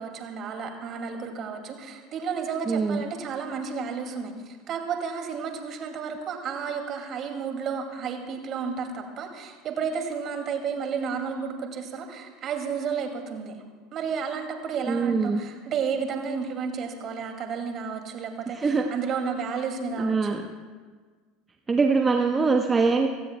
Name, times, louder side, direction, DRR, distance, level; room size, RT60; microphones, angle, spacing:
voice 1, 0.0-13.6 13.9-20.4, right 6 dB, 45° right, 4 dB, 2.3 m, -32 dB
voice 2, 2.7-3.0 14.8-15.4 18.5-18.9 20.0-20.4 21.7-23.1, right 4 dB, 20° right, 4 dB, 0.9 m, -23 dB
26.5 x 16.0 x 2.2 m, 1.5 s
hypercardioid pair, 75°, 0 cm